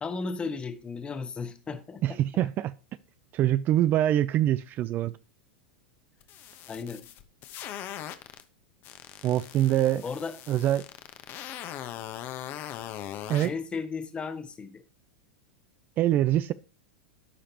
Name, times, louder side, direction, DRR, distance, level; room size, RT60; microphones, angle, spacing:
voice 1, 0.0-2.0 6.7-7.0 10.0-10.4 13.4-14.8, left 4 dB, 20° left, 1.2 m, -35 dB
voice 2, 2.0-2.7 3.3-5.1 9.2-10.0 10.5-10.8 13.3-13.5 16.0-16.5, right 12 dB, 40° right, 0.4 m, -24 dB
sound 1, 6.2-8.4 8.8-13.5, left 11 dB, 45° left, 1.0 m, -40 dB
14.0 x 5.1 x 2.9 m
hypercardioid pair, 110°, 5 cm